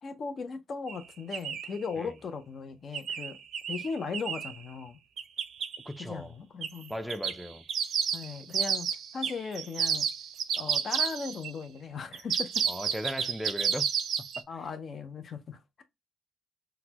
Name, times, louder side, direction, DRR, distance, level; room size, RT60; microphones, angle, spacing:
voice 1, 0.0-3.4 3.7-5.0 6.1-6.9 8.1-8.9 9.1-10.1 10.5-12.6 14.5-15.8, left 5 dB, 50° left, 0.5 m, -37 dB
sound 1, 0.9-1.0 1.3-1.8 2.9-4.6 5.2-5.8 6.6-6.8 7.1-11.5 12.1-14.4, right 7 dB, 70° right, 0.5 m, -31 dB
voice 2, 5.9-6.3 6.9-7.6 12.7-13.9 14.2-14.4, equal, ahead, 0.4 m, -37 dB
3.9 x 2.1 x 2.8 m
cardioid pair, 90°, 0 cm